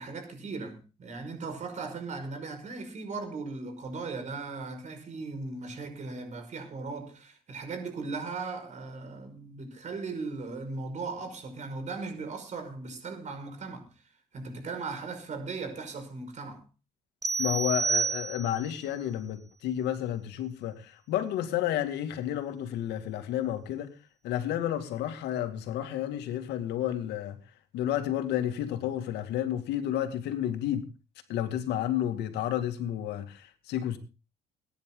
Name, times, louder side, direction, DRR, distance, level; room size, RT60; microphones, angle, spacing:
voice 1, 0.0-13.9 14.3-16.6, right 4 dB, 45° right, 5.6 m, -38 dB
sound 1, 17.2-18.8, right 5 dB, 20° right, 1.3 m, -29 dB
voice 2, 17.4-23.9 24.2-27.4 27.7-30.8 31.3-34.0, left 11 dB, 85° left, 2.3 m, -31 dB
21.0 x 10.5 x 3.9 m
cardioid pair, 110°, 17 cm